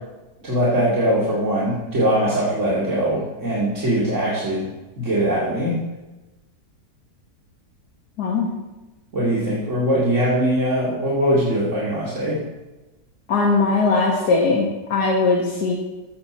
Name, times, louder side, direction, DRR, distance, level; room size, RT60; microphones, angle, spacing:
voice 1, 0.4-4.7 5.0-5.8 9.1-12.4, right 1 dB, 45° right, -8 dB, 2.7 m, -21 dB
voice 2, 13.3-15.7, left 3 dB, 70° left, -1 dB, 1.9 m, -19 dB
15.0 x 7.8 x 4.3 m, 1.1 s
omnidirectional pair, 1.8 m